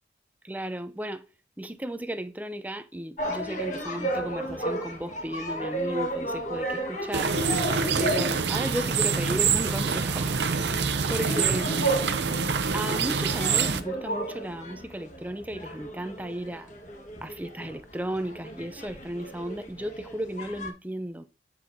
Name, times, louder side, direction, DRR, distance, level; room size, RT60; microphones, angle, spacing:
voice 1, 0.4-1.2 1.6-7.4 8.0-10.8 11.1-12.0 12.7-16.7 17.2-21.2, right 1 dB, 10° right, 0.5 m, -34 dB
sound 1, 3.2-20.7, right 1 dB, 45° left, 1.5 m, -34 dB
sound 2, 7.1-13.8, right 5 dB, 75° right, 0.7 m, -26 dB
9.8 x 4.5 x 2.7 m
head